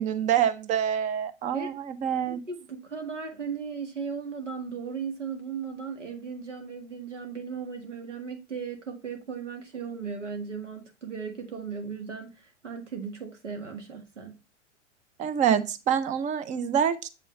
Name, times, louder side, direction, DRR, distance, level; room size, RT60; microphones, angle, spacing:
voice 1, 0.0-2.4 15.2-17.1, right 9 dB, 20° right, 0.6 m, -26 dB
voice 2, 2.3-14.4, right 6 dB, 80° right, 1.8 m, -36 dB
7.5 x 5.4 x 3.2 m
figure-of-eight pair, 100°, 36 cm